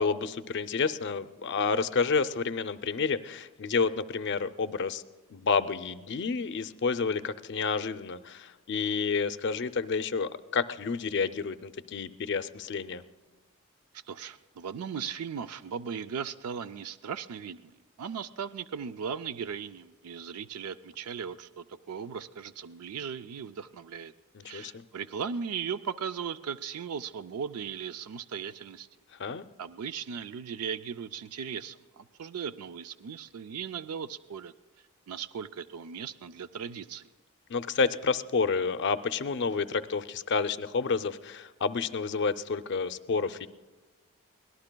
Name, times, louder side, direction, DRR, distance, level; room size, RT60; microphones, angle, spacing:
voice 1, 0.0-5.0 5.3-13.0 24.3-24.8 29.2-29.4 37.5-43.5, left 5 dB, 50° left, 12 dB, 0.5 m, -30 dB
voice 2, 13.9-24.1 24.4-28.9 29.6-34.5 35.1-37.1, right 7 dB, 80° right, 12 dB, 0.4 m, -37 dB
23.5 x 18.0 x 2.2 m, 1.2 s
head